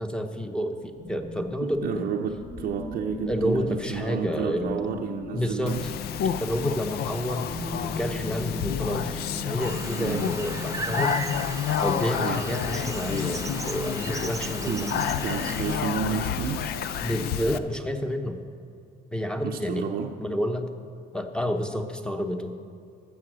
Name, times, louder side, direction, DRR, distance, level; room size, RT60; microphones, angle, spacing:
voice 1, 0.0-2.1 3.3-4.8 5.3-5.8 6.4-7.5 7.8-11.2 11.8-14.7 17.0-18.4 19.1-19.9 20.2-20.7 21.1-22.5, equal, 5° left, 6 dB, 0.9 m, -29 dB
sound 1, 1.0-17.5, left 2 dB, 30° left, 1.7 m, -39 dB
voice 2, 1.6-5.9 9.9-10.4 12.2-12.5 14.7-16.7 19.4-20.2, right 7 dB, 60° right, 1 dB, 0.7 m, -31 dB
Speech, 5.7-17.6, left 9 dB, 70° left, 0.5 m, -30 dB
sound 2, 9.6-15.8, right 4 dB, 20° right, 0.5 m, -37 dB
14.0 x 7.1 x 6.2 m, 2.4 s
cardioid pair, 110°, 17 cm